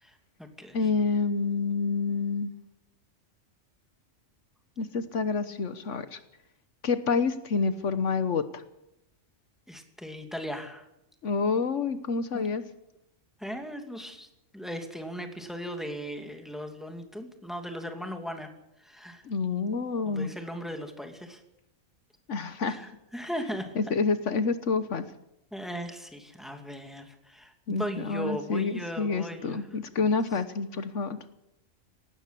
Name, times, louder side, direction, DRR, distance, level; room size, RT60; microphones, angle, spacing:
voice 1, 0.0-0.8 9.7-10.9 12.3-12.5 13.4-14.3 14.5-18.5 18.8-19.2 20.0-21.4 22.6-23.8 25.5-29.6, equal, ahead, 5 dB, 2.6 m, -38 dB
voice 2, 0.7-2.5 4.8-6.2 6.8-8.6 11.2-12.6 19.2-20.3 22.3-22.8 23.8-25.0 27.7-31.2, left 4 dB, 70° left, 12 dB, 1.4 m, -28 dB
18.5 x 17.0 x 8.3 m, 0.84 s
omnidirectional pair, 1.3 m